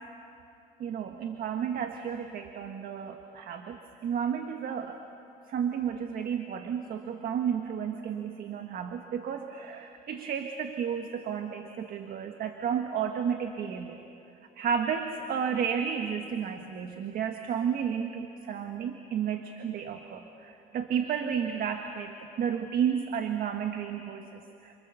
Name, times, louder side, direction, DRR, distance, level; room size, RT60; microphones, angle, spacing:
voice 1, 0.8-5.1 5.5-14.0 14.6-24.8, right 7 dB, 60° right, 5 dB, 1.5 m, -32 dB
29.0 x 28.0 x 6.9 m, 2.7 s
cardioid pair, 110°, 17 cm